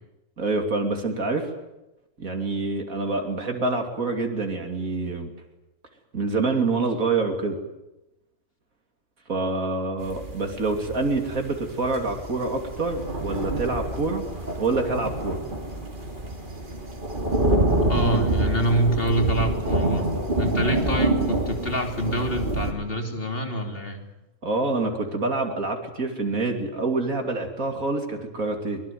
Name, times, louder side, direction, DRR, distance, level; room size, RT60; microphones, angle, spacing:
voice 1, 0.4-1.5 2.2-5.3 6.1-7.6 9.3-14.3 14.6-15.4 24.4-28.8, right 3 dB, 75° right, 4 dB, 3.2 m, -26 dB
sound 1, 10.0-22.7, right 2 dB, 35° right, 3.3 m, -27 dB
voice 2, 17.9-20.1 20.4-24.0, right 1 dB, 40° left, 5 dB, 3.4 m, -26 dB
23.5 x 22.0 x 9.3 m, 0.98 s
omnidirectional pair, 1.5 m